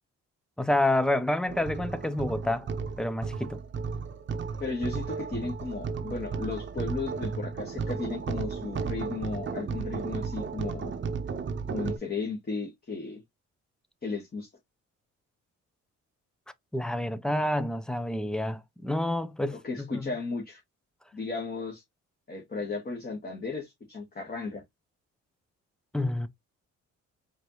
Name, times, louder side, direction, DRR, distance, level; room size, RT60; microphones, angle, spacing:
voice 1, 0.6-2.7 3.0-3.6 16.7-19.6 19.9-20.0 25.9-26.3, left 1 dB, ahead, 0.5 m, -28 dB
sound 1, 1.5-12.0, right 5 dB, 40° right, 0.9 m, -34 dB
voice 2, 4.6-10.9 11.7-13.2 14.0-14.5 19.5-20.6 21.1-21.8 22.3-24.6, left 4 dB, 30° left, 1.6 m, -35 dB
4.8 x 2.8 x 3.0 m
cardioid pair, 90°, 30 cm